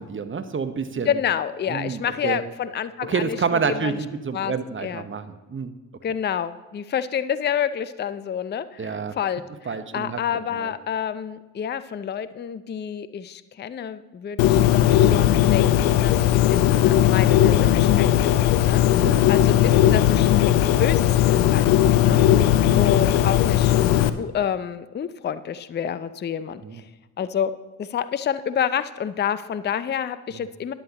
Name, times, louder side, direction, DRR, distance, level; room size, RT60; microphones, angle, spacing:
voice 1, 0.0-1.2 1.7-2.4 3.1-5.7 8.8-9.2 9.6-10.2 10.6-10.7 16.3-16.5 19.0-19.3 22.1-22.4 22.7-22.9 26.6-26.8 30.3-30.4, right 5 dB, 25° right, 9 dB, 1.1 m, -29 dB
voice 2, 1.0-4.0 4.3-4.5 4.8-5.1 6.0-22.2 22.8-23.7 24.2-26.9 27.2-27.5 27.8-30.7, left 8 dB, 25° left, 14 dB, 0.5 m, -28 dB
Bird, 14.4-24.1, left 12 dB, 70° left, 0.7 m, -18 dB
13.0 x 10.5 x 3.0 m, 1.2 s
hypercardioid pair, 55°, 47 cm